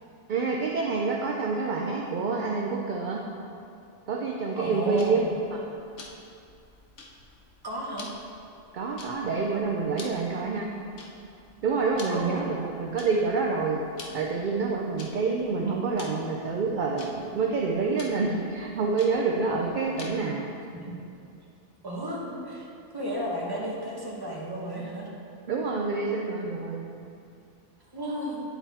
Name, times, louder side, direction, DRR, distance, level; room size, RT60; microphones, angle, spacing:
voice 1, 0.3-3.2 4.1-5.2 5.5-5.6 8.7-10.7 11.6-13.8 14.1-20.5 25.5-26.8, right 4 dB, 60° right, -1 dB, 0.5 m, -27 dB
voice 2, 4.6-5.3 7.6-8.1 12.1-12.6 20.7-20.9 21.8-22.7 22.9-25.1 27.9-28.4, equal, 20° right, -4 dB, 1.0 m, -33 dB
Tick-tock, 5.0-20.4, left 3 dB, 90° left, 1.2 m, -49 dB
9.0 x 4.1 x 4.1 m, 2.6 s
omnidirectional pair, 1.2 m